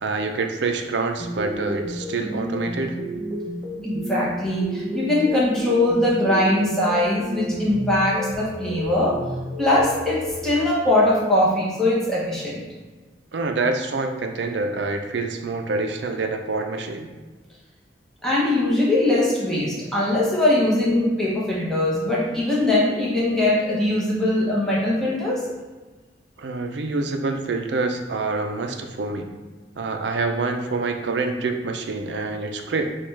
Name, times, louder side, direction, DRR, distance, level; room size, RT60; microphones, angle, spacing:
voice 1, 0.0-3.0 13.3-17.1 26.4-29.3 29.8-32.9, right 3 dB, 75° right, 5 dB, 0.5 m, -26 dB
sound 1, 1.2-10.5, equal, 35° right, 0.6 m, -31 dB
voice 2, 3.8-9.1 9.6-12.6 18.2-25.4, left 1 dB, 5° left, -7 dB, 0.9 m, -21 dB
6.8 x 2.4 x 3.3 m, 1.3 s
head